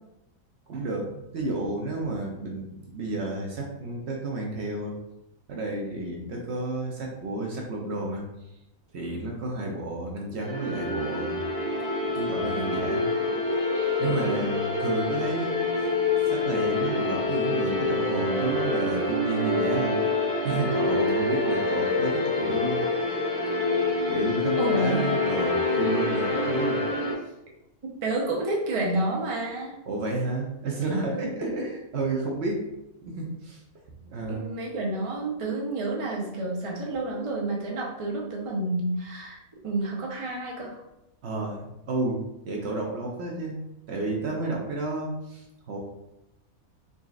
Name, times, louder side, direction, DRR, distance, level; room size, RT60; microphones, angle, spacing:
voice 1, 0.7-4.9 5.5-8.2 8.9-11.5 12.1-13.1 14.0-15.9 16.2-20.0 20.4-22.9 24.1-26.9 29.9-32.7 33.0-33.6 34.0-34.5 41.2-42.2 42.4-43.6 43.9-45.8, right 2 dB, 60° right, 0 dB, 0.9 m, -31 dB
sound 1, 10.4-27.1, left 2 dB, 30° left, 0.8 m, -26 dB
voice 2, 24.6-25.1 27.8-29.8 31.1-31.3 34.2-39.4 39.6-40.8, right 2 dB, 35° right, -2 dB, 0.6 m, -29 dB
3.9 x 3.6 x 2.4 m, 0.88 s
omnidirectional pair, 1.4 m